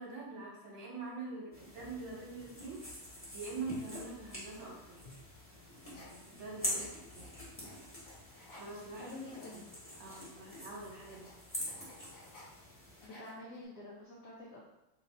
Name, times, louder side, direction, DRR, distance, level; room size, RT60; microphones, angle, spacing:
voice 1, 0.0-2.8 3.3-5.0 5.9-7.4 8.5-9.1 9.5-9.6 10.0-11.3, right 3 dB, 65° right, -3 dB, 1.6 m, -44 dB
sound 1, 1.5-13.1, equal, 10° left, 0.9 m, -45 dB
sound 2, 5.8-8.8 9.1-12.6 12.9-13.6, left 2 dB, 55° left, 1.6 m, -56 dB
voice 2, 9.0-9.6 13.0-14.6, left 2 dB, 80° left, -5 dB, 0.7 m, -48 dB
3.5 x 2.6 x 4.1 m, 0.93 s
omnidirectional pair, 2.4 m